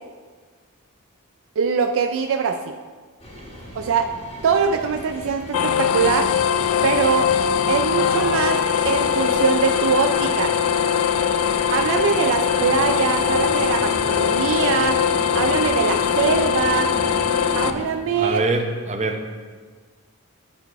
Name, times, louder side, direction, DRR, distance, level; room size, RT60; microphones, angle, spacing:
voice 1, 1.6-2.8 3.7-4.1 4.4-6.3 6.8-7.3 7.7-8.6 8.9-10.5 11.7-15.0 15.3-16.9 17.5-18.4, right 6 dB, 60° right, 5 dB, 0.4 m, -22 dB
sound 1, 3.2-17.9, left 1 dB, 25° left, 1.5 m, -35 dB
sound 2, 5.5-17.7, left 8 dB, 65° left, 0.3 m, -21 dB
voice 2, 18.1-19.3, right 2 dB, 30° right, 4 dB, 0.7 m, -24 dB
10.5 x 4.0 x 4.6 m, 1.5 s
head